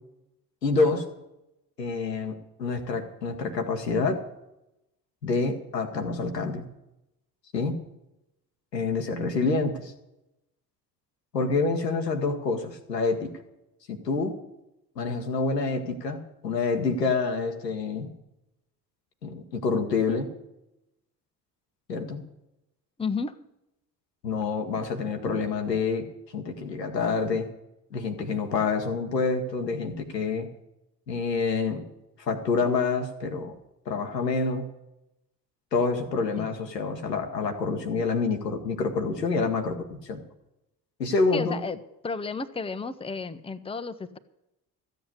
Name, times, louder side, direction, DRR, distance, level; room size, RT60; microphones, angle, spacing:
voice 1, 0.6-1.0 1.8-4.2 5.2-6.6 7.5-7.8 8.7-9.9 11.3-13.3 14.0-14.3 15.0-18.1 19.2-20.3 21.9-22.2 24.2-26.1 26.3-27.5 27.9-30.5 31.1-31.8 32.2-33.5 33.9-34.6 35.7-40.2 41.0-41.6, left 4 dB, 90° left, 5 dB, 1.2 m, -27 dB
voice 2, 23.0-23.4 36.4-36.5 41.3-41.8 42.0-44.2, left 4 dB, 10° left, 10 dB, 0.8 m, -32 dB
14.0 x 7.9 x 8.2 m, 0.89 s
figure-of-eight pair, 50°, 48 cm